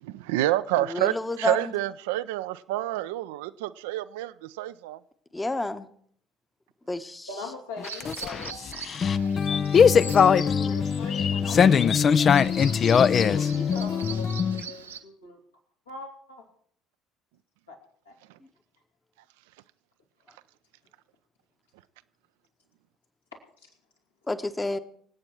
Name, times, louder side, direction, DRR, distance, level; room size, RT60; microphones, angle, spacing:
voice 1, 0.0-5.0 18.3-18.4, right 15 dB, 65° right, 0.5 m, -28 dB
voice 2, 0.7-1.7 5.3-5.9 6.9-7.3 24.3-24.8, left 2 dB, 15° left, 1.0 m, -30 dB
voice 3, 7.3-8.7 9.0-12.4 13.2-15.4 15.9-16.4 17.7-17.8 18.0-18.1, left 3 dB, 80° left, 3.0 m, -42 dB
music vibe sending the sunshine into your ears ident, 7.8-14.6, left 7 dB, 40° left, 0.5 m, -21 dB
Bird vocalization bird call bird song, 7.8-15.0, right 7 dB, 80° right, 0.9 m, -43 dB
25.5 x 8.7 x 4.6 m
figure-of-eight pair, 60°, 0 cm